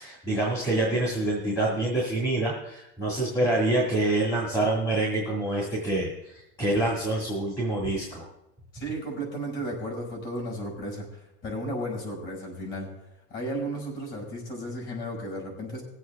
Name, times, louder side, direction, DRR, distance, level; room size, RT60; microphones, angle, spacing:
voice 1, 0.0-8.2, right 2 dB, 10° left, -4 dB, 2.0 m, -26 dB
voice 2, 8.7-12.9 13.3-15.8, right 1 dB, 35° left, -2 dB, 5.6 m, -34 dB
20.0 x 7.8 x 3.5 m, 0.87 s
supercardioid pair, 170°, 34 cm